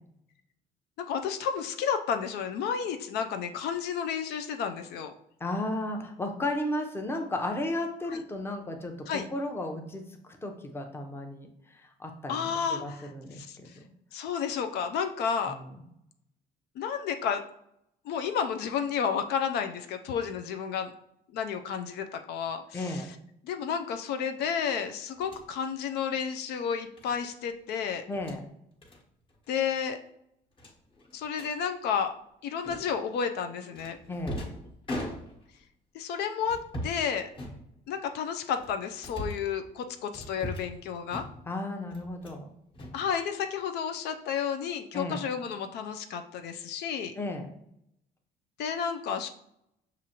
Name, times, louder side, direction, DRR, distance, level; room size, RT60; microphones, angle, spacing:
voice 1, 1.0-5.1 8.1-8.2 9.1-9.3 12.3-13.8 14.1-15.6 16.8-17.4 18.0-20.9 21.3-23.0 23.4-28.0 29.5-30.0 31.1-32.2 32.4-34.0 35.9-37.3 37.9-41.3 42.9-47.1 48.6-49.3, left 7 dB, 75° left, 7 dB, 0.4 m, -31 dB
voice 2, 5.4-13.8 15.5-15.8 22.7-23.1 28.1-28.4 34.1-34.4 41.5-42.4 44.9-45.2 47.2-47.5, left 1 dB, 15° left, 4 dB, 0.6 m, -34 dB
sound 1, 25.2-25.5 27.0-27.2 28.0-28.4 28.8-29.0 29.3-29.5 29.8-29.9 30.6-31.5 32.6-33.1 33.7-35.6 36.4-37.0 37.3-38.1 38.6-39.5 40.1-40.8 41.1-41.6 41.9-42.4 42.7-43.6, left 1 dB, 30° left, 1.1 m, -40 dB
6.0 x 2.5 x 2.8 m, 0.75 s
cardioid pair, 110°, 17 cm